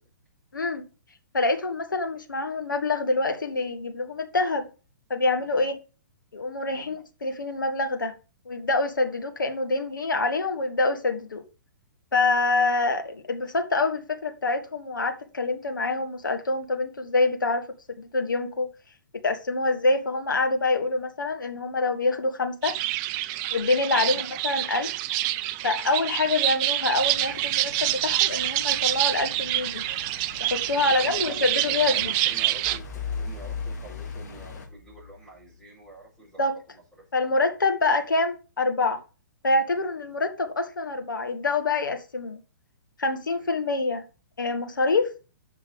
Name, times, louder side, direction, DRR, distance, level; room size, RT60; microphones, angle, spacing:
voice 1, 0.5-0.9 1.3-4.7 5.1-5.8 6.3-8.1 8.4-11.4 12.1-17.7 18.0-18.7 19.1-22.8 23.5-24.9 25.6-29.8 30.4-32.1 36.4-36.5 37.1-39.0 39.4-42.4 43.0-44.0 44.4-45.1, left 3 dB, 80° left, 1.6 m, -26 dB
sound 1, 22.6-32.8, right 15 dB, 30° right, 0.5 m, -27 dB
sound 2, 26.9-34.7, left 5 dB, 55° left, 2.5 m, -46 dB
voice 2, 30.8-36.4 36.7-37.3 40.0-40.1 43.4-43.5, right 1 dB, 5° left, 5.6 m, -46 dB
sound 3, 32.6-35.5, left 5 dB, 30° left, 4.7 m, -35 dB
7.9 x 5.8 x 5.4 m
figure-of-eight pair, 125°, 10 cm